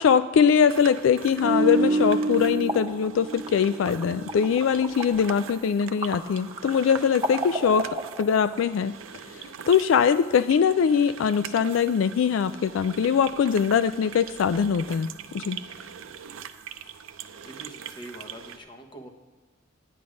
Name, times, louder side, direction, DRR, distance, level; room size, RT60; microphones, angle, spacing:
voice 1, 0.0-9.0 9.3-15.1 15.3-15.6, left 7 dB, 70° left, 13 dB, 0.3 m, -22 dB
sound 1, 0.7-18.6, right 8 dB, 80° right, 0.5 m, -42 dB
sound 2, 1.4-4.6 4.9-5.2, right 2 dB, 40° right, 1.0 m, -28 dB
sound 3, 2.3-8.6, right 1 dB, 20° right, 0.7 m, -36 dB
voice 2, 17.2-19.1, right 1 dB, 25° left, 3 dB, 1.1 m, -44 dB
10.0 x 9.6 x 5.1 m, 1.2 s
head